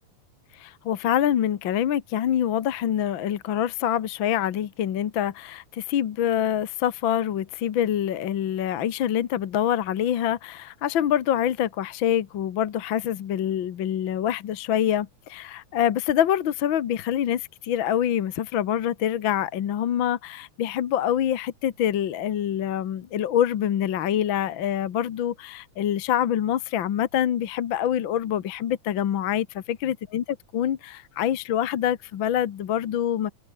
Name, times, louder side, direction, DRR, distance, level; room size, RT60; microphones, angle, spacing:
voice 1, 0.5-33.3, left 10 dB, 60° left, 1.3 m, -25 dB
open air
omnidirectional pair, 3.7 m